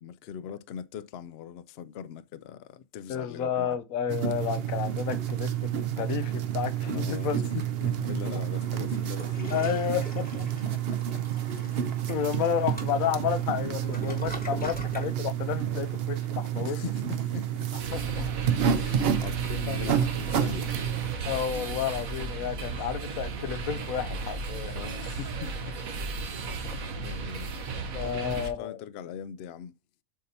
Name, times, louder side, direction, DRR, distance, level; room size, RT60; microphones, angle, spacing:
voice 1, 0.0-3.8 6.9-9.7 10.7-11.2 11.6-12.1 12.5-12.6 15.7-16.0 16.7-17.7 18.7-20.7 24.7-25.8 27.0-27.6 28.0-29.7, left 8 dB, 60° left, 0.7 m, -41 dB
voice 2, 3.1-7.4 8.3-8.4 9.5-10.5 11.8-16.8 17.9-18.3 19.7-20.0 21.3-24.8 26.7-26.8 27.9-28.8, left 9 dB, 90° left, 1.1 m, -31 dB
sound 1, 4.1-21.1, right 9 dB, 55° right, 0.8 m, -30 dB
Toilet flush, 9.0-15.1, left 1 dB, 5° left, 1.2 m, -43 dB
sound 2, 17.8-28.5, right 3 dB, 90° right, 1.4 m, -35 dB
7.5 x 2.8 x 5.2 m
omnidirectional pair, 1.4 m